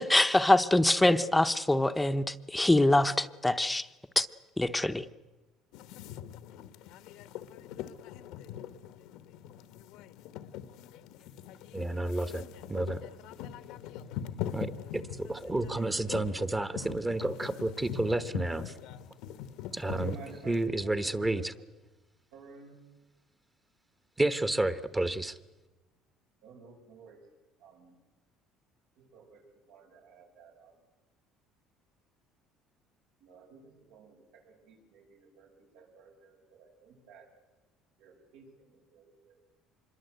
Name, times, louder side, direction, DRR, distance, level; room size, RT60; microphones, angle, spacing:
voice 1, 0.0-3.9 4.2-4.3 4.6-5.0, left 1 dB, 5° left, 10 dB, 0.8 m, -24 dB
sound 1, 5.7-20.7, left 10 dB, 80° left, 1.2 m, -42 dB
voice 2, 11.7-13.0 14.5-18.8 19.7-21.5 24.2-25.4, right 2 dB, 15° right, 13 dB, 1.1 m, -31 dB
voice 3, 19.8-20.5 21.1-21.2 22.3-22.8 26.4-27.2 27.6-27.9 29.0-29.4 29.7-30.7 33.2-34.1 34.7-37.3 38.0-38.5 38.9-39.3, right 5 dB, 90° right, 2 dB, 7.3 m, -53 dB
26.0 x 22.5 x 8.1 m, 1.1 s
cardioid pair, 130°, 0 cm